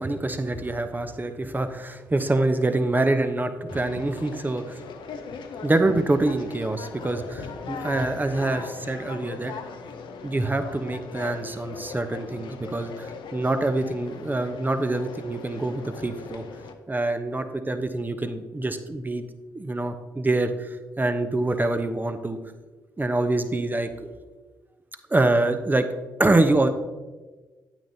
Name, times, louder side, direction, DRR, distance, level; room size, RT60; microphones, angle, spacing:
voice 1, 0.0-4.8 5.6-9.5 10.2-16.4 16.9-19.2 19.5-20.7 21.0-22.4 23.0-23.9 25.1-25.8 26.2-26.7, right 2 dB, 20° right, 8 dB, 0.9 m, -25 dB
Conversation, 3.7-16.7, left 5 dB, 70° left, 0.7 m, -39 dB
9.0 x 8.8 x 2.8 m, 1.3 s
hypercardioid pair, 40°, 9 cm